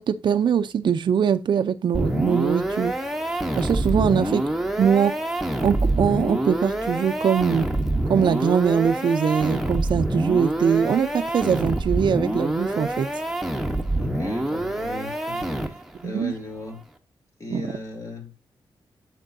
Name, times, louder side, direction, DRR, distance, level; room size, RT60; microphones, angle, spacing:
voice 1, 0.0-2.9 3.6-4.4 4.8-5.1 5.6-7.7 8.1-13.1 16.0-16.3 17.5-17.6, right 7 dB, 60° right, 0.5 m, -22 dB
sound 1, 1.9-16.0, right 1 dB, 5° right, 1.0 m, -26 dB
voice 2, 3.8-4.2 13.9-16.8 17.4-18.3, left 2 dB, 35° left, 2.7 m, -37 dB
8.9 x 6.6 x 2.7 m
wide cardioid pair, 125°, 9 cm